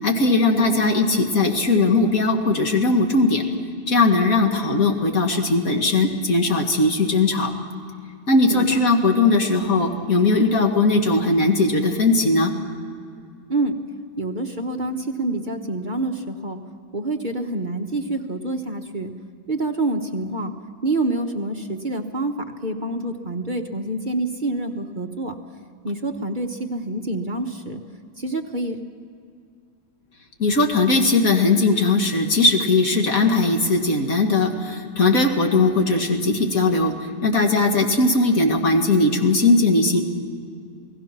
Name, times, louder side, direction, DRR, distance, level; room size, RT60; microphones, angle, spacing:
voice 1, 0.0-3.4 3.9-7.5 8.3-12.5 30.4-36.9 37.2-40.0, left 3 dB, 45° left, 3 dB, 2.4 m, -19 dB
voice 2, 14.2-16.6 16.9-19.1 19.5-20.5 20.8-22.3 22.6-25.4 25.8-27.8 28.2-28.8, right 2 dB, 30° right, 3 dB, 1.0 m, -27 dB
29.0 x 18.5 x 6.1 m, 2.3 s
omnidirectional pair, 2.2 m